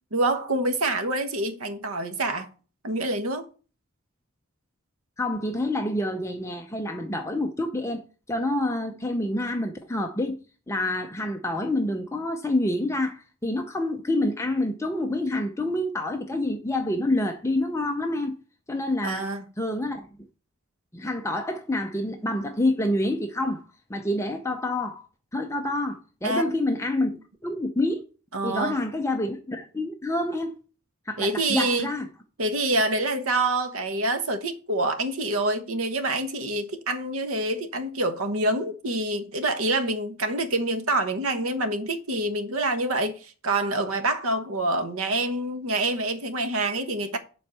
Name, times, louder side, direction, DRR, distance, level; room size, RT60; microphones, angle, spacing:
voice 1, 0.1-2.5 2.8-3.5 19.0-19.4 26.2-26.5 28.3-28.8 31.2-31.9 32.4-47.2, right 2 dB, 85° right, 1.2 m, -26 dB
voice 2, 5.2-8.0 8.3-10.4 10.7-18.4 18.7-19.3 19.6-20.1 20.9-25.1 25.3-28.0 28.4-30.6 31.1-32.1, left 1 dB, 15° left, 0.6 m, -27 dB
7.2 x 4.5 x 6.7 m
head